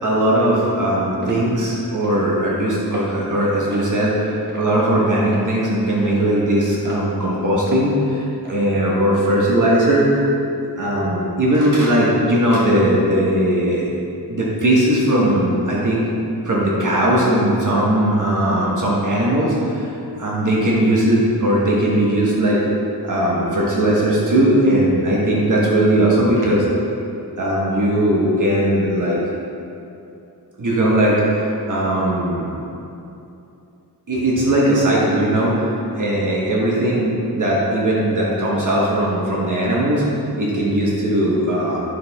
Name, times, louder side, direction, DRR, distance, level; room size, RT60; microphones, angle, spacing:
voice 1, 0.0-8.2 8.5-10.1 10.8-13.9 14.3-16.0 16.4-19.8 20.2-22.6 23.0-26.6 27.4-29.2 30.6-32.5 34.1-35.7 36.0-40.0 40.4-41.9, right 1 dB, 50° right, -5 dB, 1.4 m, -18 dB
sound 1, 1.2-1.4 2.0-2.2 2.9-3.1 3.7-3.9 4.5-4.8 5.3-5.5 6.0-6.3 6.8-7.0 7.7-7.9 8.4-8.6, right 1 dB, 25° right, 1.3 m, -36 dB
9.7 x 6.8 x 3.6 m, 2.7 s
wide cardioid pair, 135°, 38 cm